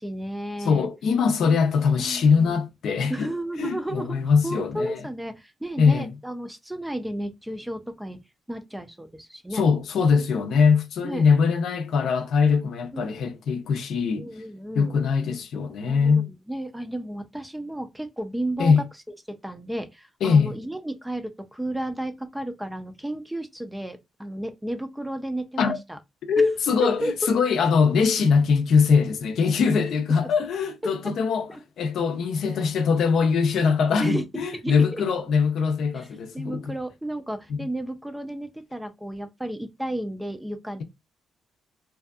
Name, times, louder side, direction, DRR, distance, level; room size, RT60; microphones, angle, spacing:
voice 1, 0.0-0.9 1.4-1.6 1.9-2.6 3.1-8.2 8.5-9.6 11.0-11.2 12.9-13.1 14.2-14.9 15.9-18.9 19.3-26.0 26.8-27.1 30.2-30.3 30.8-30.9 31.5-31.6 34.0-35.0 35.9-36.1 36.3-40.8, right 1 dB, 5° right, 0.5 m, -33 dB
voice 2, 0.6-3.3 3.6-5.0 5.8-6.1 9.5-14.3 14.7-16.3 18.6-18.8 20.2-20.5 25.6-25.8 26.3-31.5 31.8-36.7 37.5-37.6, left 5 dB, 70° left, 0.5 m, -22 dB
2.6 x 2.4 x 2.3 m
cardioid pair, 90°, 0 cm